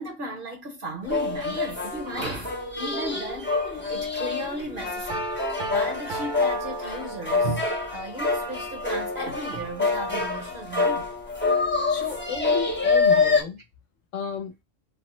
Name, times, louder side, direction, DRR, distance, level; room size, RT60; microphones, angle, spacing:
voice 1, 0.0-11.1, right 1 dB, 45° right, 0.9 m, -35 dB
sound 1, 1.0-13.4, left 4 dB, 15° left, 0.5 m, -26 dB
Piano, 5.1-7.7, right 3 dB, 70° right, 0.4 m, -36 dB
voice 2, 11.9-13.6 14.1-14.5, left 5 dB, 70° left, 1.0 m, -32 dB
3.3 x 2.0 x 2.9 m
omnidirectional pair, 1.4 m